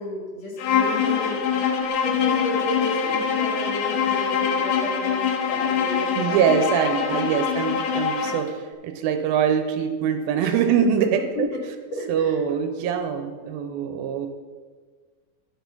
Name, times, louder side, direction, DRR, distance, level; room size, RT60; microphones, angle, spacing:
voice 1, 0.0-1.4 2.0-6.6 6.9-7.4 10.4-10.6 11.3-11.4 11.9-12.4, left 1 dB, 50° left, -2 dB, 2.4 m, -33 dB
Bowed string instrument, 0.6-8.5, left 7 dB, 75° left, 2.1 m, -24 dB
voice 2, 6.2-11.2 12.1-14.3, right 7 dB, 85° right, 6 dB, 2.4 m, -23 dB
11.0 x 6.2 x 5.4 m, 1.5 s
omnidirectional pair, 4.4 m